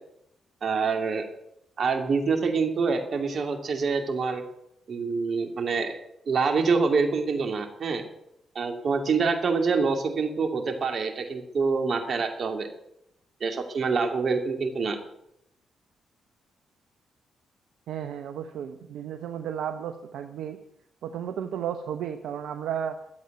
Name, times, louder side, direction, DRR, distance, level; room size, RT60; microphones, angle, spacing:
voice 1, 0.6-1.3 1.8-4.4 4.9-6.0 6.3-8.0 8.5-12.7 13.4-15.0, right 4 dB, 55° right, 5 dB, 2.7 m, -26 dB
voice 2, 17.9-20.6 21.0-23.0, right 9 dB, 75° right, 7 dB, 0.9 m, -33 dB
13.0 x 8.3 x 9.4 m, 0.79 s
supercardioid pair, 50°, 0 cm